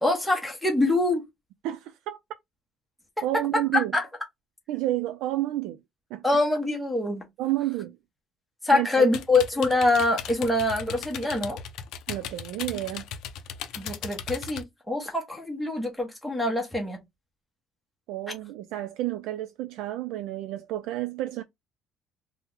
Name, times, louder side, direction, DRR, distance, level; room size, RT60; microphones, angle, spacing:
voice 1, 0.0-1.2 3.7-4.0 6.2-7.2 8.6-11.6 13.8-17.0, left 2 dB, ahead, 0.7 m, -24 dB
voice 2, 1.6-2.2 3.2-3.9 4.7-5.8 6.1-6.4 7.4-8.0 8.7-9.1 12.1-13.0 18.1-21.4, right 15 dB, 90° right, 0.3 m, -30 dB
sound 1, 9.1-14.6, left 7 dB, 65° left, 0.5 m, -37 dB
2.8 x 2.0 x 3.6 m
cardioid pair, 175°, 0 cm